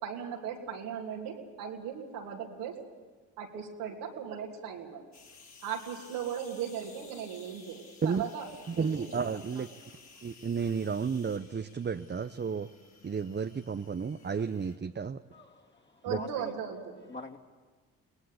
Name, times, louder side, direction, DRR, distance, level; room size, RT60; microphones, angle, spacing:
voice 1, 0.0-2.7 3.4-5.0 5.6-8.5 8.7-9.3 16.0-17.0, right 8 dB, 90° right, -1 dB, 3.1 m, -38 dB
sound 1, 5.1-14.8, left 4 dB, 45° left, 4.8 m, -55 dB
voice 2, 8.7-9.7 10.2-12.7 13.0-15.2 16.1-16.2, right 6 dB, 30° right, 8 dB, 0.8 m, -32 dB
voice 3, 15.3-16.5 17.1-17.4, left 3 dB, 30° left, 0 dB, 3.2 m, -44 dB
22.5 x 19.5 x 8.5 m, 1.4 s
hypercardioid pair, 55°, 37 cm